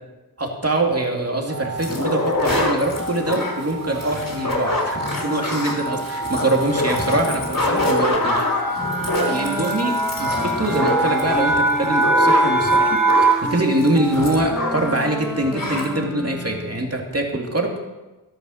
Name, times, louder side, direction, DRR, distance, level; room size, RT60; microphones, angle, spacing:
voice 1, 0.4-8.8 9.3-17.7, right 1 dB, 40° right, 1 dB, 2.6 m, -24 dB
sound 1, 1.5-13.6, right 2 dB, 60° right, 1.7 m, -24 dB
sound 2, 1.8-15.0 15.2-15.3 15.5-15.9, left 1 dB, 65° left, 3.6 m, -25 dB
Wind instrument woodwind instrument, 8.8-17.0, equal, ahead, 1.1 m, -31 dB
13.0 x 11.0 x 6.5 m, 1.1 s
wide cardioid pair, 50°, 37 cm